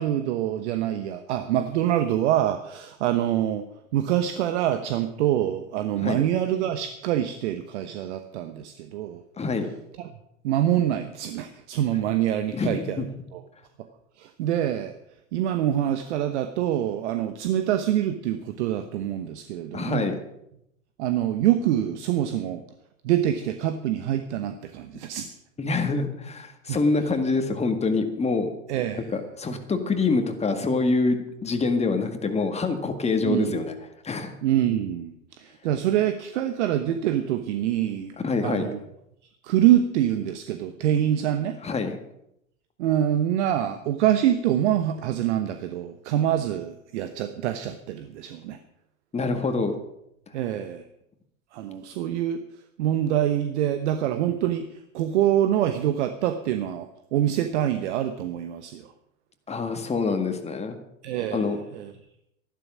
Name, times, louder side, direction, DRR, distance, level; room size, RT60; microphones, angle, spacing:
voice 1, 0.0-3.7 3.9-9.2 10.0-10.1 10.4-13.1 13.3-13.4 14.2-14.9 15.3-20.2 21.0-22.6 23.0-25.3 26.7-26.8 28.7-29.1 29.5-29.6 33.2-33.6 34.4-38.1 38.4-38.8 39.4-41.6 42.8-48.6 50.3-50.8 51.5-52.4 52.8-58.9 61.0-61.9, right 11 dB, 60° right, 10 dB, 1.0 m, -25 dB
voice 2, 9.4-9.7 12.5-13.0 19.7-20.2 25.6-28.5 29.1-33.7 34.0-34.3 38.2-38.7 41.6-42.0 49.1-49.7 59.5-60.8 61.3-61.6, left 3 dB, 15° left, 6 dB, 1.8 m, -25 dB
13.0 x 12.0 x 6.2 m, 0.80 s
figure-of-eight pair, 85°, 39 cm